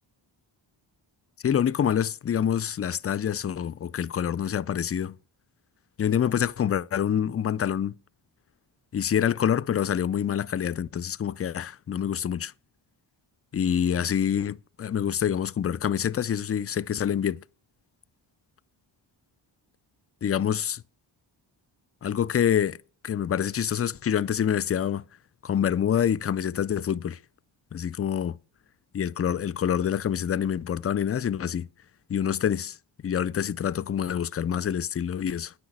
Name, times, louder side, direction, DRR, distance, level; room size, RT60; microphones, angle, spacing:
voice 1, 1.4-5.2 6.0-7.9 8.9-12.5 13.5-17.4 20.2-20.8 22.0-22.8 23.0-25.0 25.4-27.2 27.7-28.4 28.9-31.7 32.1-32.8 33.0-35.5, left 9 dB, 30° left, 0.4 m, -26 dB
9.9 x 6.4 x 5.9 m
cardioid pair, 60°, 48 cm